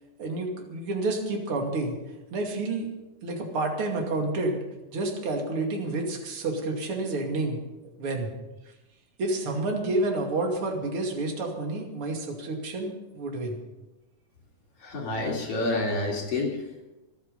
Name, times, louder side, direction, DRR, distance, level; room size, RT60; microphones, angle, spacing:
voice 1, 0.2-2.0 2.3-2.9 3.2-4.6 4.9-7.6 8.0-8.3 9.2-13.6, right 2 dB, 40° right, 2 dB, 3.0 m, -29 dB
voice 2, 14.8-16.6, left 2 dB, 45° left, -2 dB, 4.0 m, -28 dB
26.0 x 9.2 x 5.3 m, 1.0 s
omnidirectional pair, 3.9 m